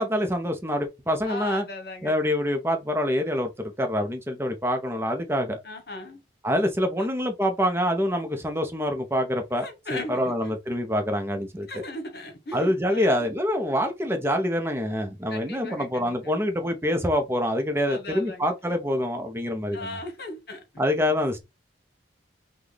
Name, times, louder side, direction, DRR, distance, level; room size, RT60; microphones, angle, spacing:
voice 1, 0.0-1.6 2.0-5.6 6.4-11.7 12.5-19.9 20.8-21.4, equal, 15° right, 0.7 m, -26 dB
voice 2, 1.2-2.2 5.6-6.2 7.0-7.1 9.5-10.5 11.7-13.3 15.3-16.5 17.9-18.5 19.7-20.8, left 2 dB, 55° left, 1.2 m, -38 dB
6.0 x 2.3 x 3.3 m
head